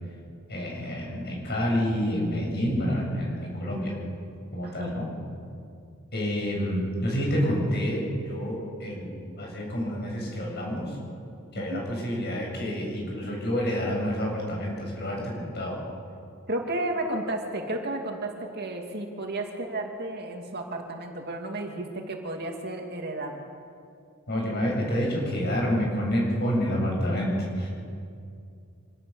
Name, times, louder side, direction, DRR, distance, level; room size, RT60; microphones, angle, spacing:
voice 1, 0.5-3.9 4.5-5.1 6.1-11.0 11.5-15.8 24.3-27.7, equal, 50° left, -1 dB, 7.5 m, -28 dB
voice 2, 4.6-5.1 11.7-11.8 16.5-23.4, right 1 dB, 50° right, 2 dB, 2.5 m, -33 dB
26.5 x 18.0 x 7.1 m, 2.5 s
head